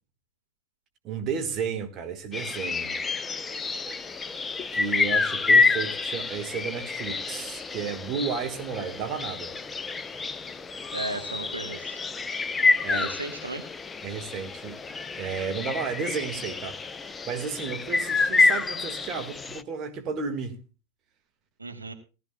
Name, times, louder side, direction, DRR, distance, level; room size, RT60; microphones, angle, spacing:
voice 1, 1.0-3.0 4.7-9.5 12.8-13.1 14.0-14.8 15.2-16.8 17.2-20.6, right 6 dB, 30° right, 1.7 m, -33 dB
sound 1, 2.3-19.6, left 4 dB, 15° left, 0.6 m, -28 dB
voice 2, 10.9-12.0 12.9-13.7 21.6-21.9, right 3 dB, 80° right, 1.3 m, -35 dB
18.0 x 13.5 x 2.3 m
figure-of-eight pair, 90°, 0 cm